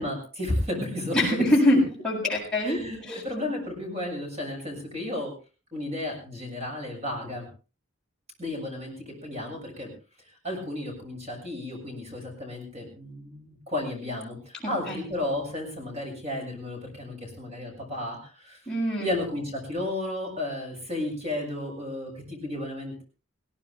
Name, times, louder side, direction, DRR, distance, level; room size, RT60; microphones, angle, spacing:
voice 1, 0.0-1.4 2.6-5.3 5.7-7.5 8.4-9.9 10.4-18.6 19.0-23.0, left 1 dB, 30° right, 1 dB, 7.0 m, -33 dB
voice 2, 1.1-1.8 2.0-2.8 3.1-3.2 14.6-15.0 18.7-19.1, left 1 dB, 5° left, -4 dB, 7.7 m, -24 dB
20.0 x 17.0 x 3.5 m, 0.35 s
head